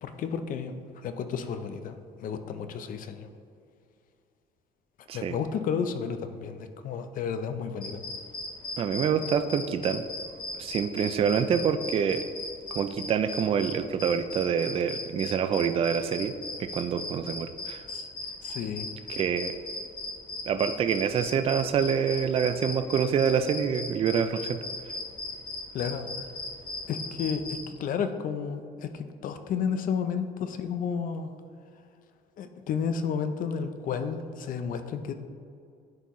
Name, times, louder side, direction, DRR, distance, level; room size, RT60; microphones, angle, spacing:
voice 1, 0.0-3.3 5.0-8.0 17.9-18.1 18.4-18.9 25.7-26.3 26.9-31.3 32.4-35.1, left 6 dB, 55° left, 9 dB, 0.6 m, -32 dB
sound 1, 7.8-27.6, left 3 dB, 25° left, 1.4 m, -37 dB
voice 2, 8.8-10.0 10.6-12.2 12.7-16.3 16.6-17.9 19.1-19.5 20.5-24.6, right 7 dB, 35° right, 10 dB, 0.4 m, -26 dB
10.5 x 4.5 x 3.1 m, 2.4 s
cardioid pair, 120°, 16 cm